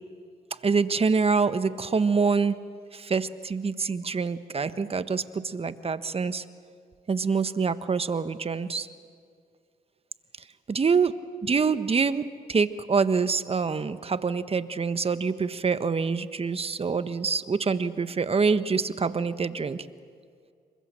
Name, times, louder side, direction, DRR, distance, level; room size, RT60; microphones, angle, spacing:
voice 1, 0.6-2.6 2.9-6.4 7.1-8.9 10.7-11.1 11.4-19.9, right 5 dB, 35° right, 12 dB, 1.3 m, -26 dB
27.5 x 24.5 x 7.7 m, 2.2 s
supercardioid pair, 60°, 17 cm